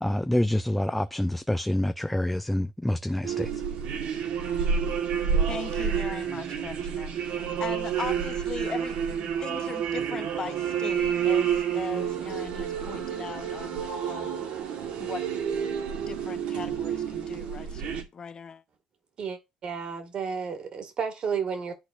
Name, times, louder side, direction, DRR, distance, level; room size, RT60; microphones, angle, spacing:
voice 1, 0.0-3.5, left 1 dB, 5° left, 0.3 m, -27 dB
sound 1, 3.2-18.0, right 7 dB, 65° right, 1.6 m, -29 dB
voice 2, 5.5-14.5 15.0-15.3 16.1-18.6, left 6 dB, 35° left, 0.8 m, -39 dB
voice 3, 19.2-21.7, right 6 dB, 45° right, 2.0 m, -32 dB
12.0 x 4.1 x 2.5 m
cardioid pair, 120°, 2 cm